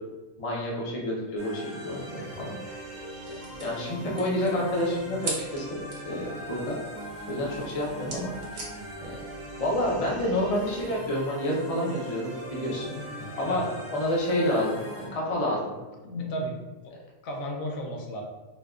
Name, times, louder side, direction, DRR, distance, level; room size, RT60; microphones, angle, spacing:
voice 1, 0.4-2.8 3.6-5.8 6.1-6.8 7.3-8.3 9.0-9.1 9.6-12.9 13.3-15.8, left 1 dB, 40° left, -4 dB, 0.5 m, -29 dB
sound 1, 1.4-15.1, right 1 dB, 35° right, 0.8 m, -41 dB
voice 2, 2.2-2.5 12.8-13.7 16.0-16.6 16.8-16.9 17.2-18.2, equal, 75° left, 1 dB, 1.0 m, -35 dB
sound 2, 2.6-11.1, right 2 dB, 55° right, 0.9 m, -43 dB
4.2 x 2.2 x 2.4 m, 1.1 s
omnidirectional pair, 1.5 m